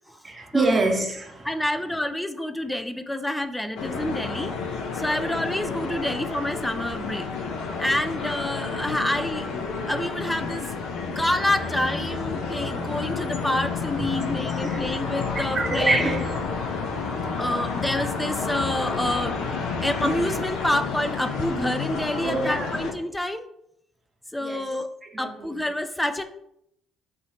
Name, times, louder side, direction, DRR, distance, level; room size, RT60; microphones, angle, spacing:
voice 1, 0.2-1.5 13.0-13.1 14.0-14.1 14.5-14.8 15.3-17.4 22.2-22.8 24.4-24.7 25.0-25.5, right 2 dB, 30° right, 0.9 m, -27 dB
voice 2, 1.4-4.6 4.9-7.3 7.8-10.7 11.1-16.2 17.4-19.4 19.8-23.5 24.3-24.9 25.2-26.2, left 1 dB, 5° left, 0.4 m, -28 dB
sound 1, 3.8-22.9, left 4 dB, 65° left, 0.6 m, -30 dB
3.4 x 2.7 x 3.9 m
hypercardioid pair, 50°, 0 cm